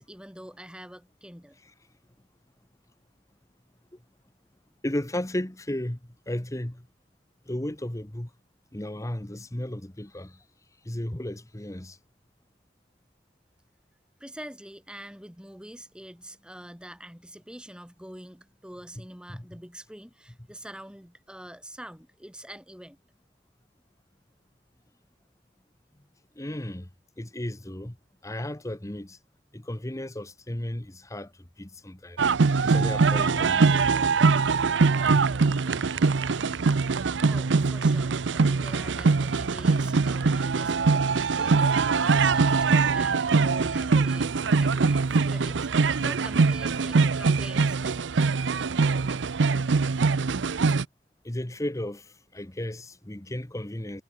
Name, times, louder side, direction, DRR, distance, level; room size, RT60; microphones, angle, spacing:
voice 1, 0.0-1.6 14.2-23.0 37.3-44.3 44.6-48.0, equal, 5° right, 2.2 m, -44 dB
voice 2, 4.8-6.9 7.5-8.3 8.7-10.4 10.8-12.0 19.0-19.1 19.3-19.5 26.4-26.9 27.2-28.0 28.2-29.2 29.5-31.3 31.6-32.2 32.6-33.8 35.1-35.2 45.9-46.0 51.2-54.0, left 1 dB, 15° left, 1.1 m, -34 dB
sound 1, 32.2-50.8, right 4 dB, 80° right, 0.6 m, -23 dB
head